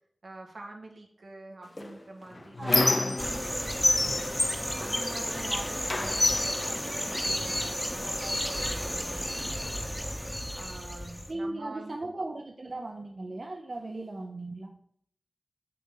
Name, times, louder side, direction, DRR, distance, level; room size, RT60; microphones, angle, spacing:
voice 1, 0.2-4.3 4.8-9.5 9.8-10.0 10.5-12.1, right 2 dB, 75° right, 1 dB, 1.6 m, -46 dB
Squeak, 1.8-3.5 3.8-5.5 5.9-7.6 8.4-8.5 8.8-9.8, left 2 dB, 40° left, 0.6 m, -29 dB
voice 2, 2.6-3.4 11.3-14.8, right 2 dB, 50° right, 2 dB, 0.7 m, -37 dB
sound 1, 3.2-11.3, equal, 5° left, 0.9 m, -33 dB
7.2 x 6.7 x 3.8 m, 0.65 s
wide cardioid pair, 85°, 0 cm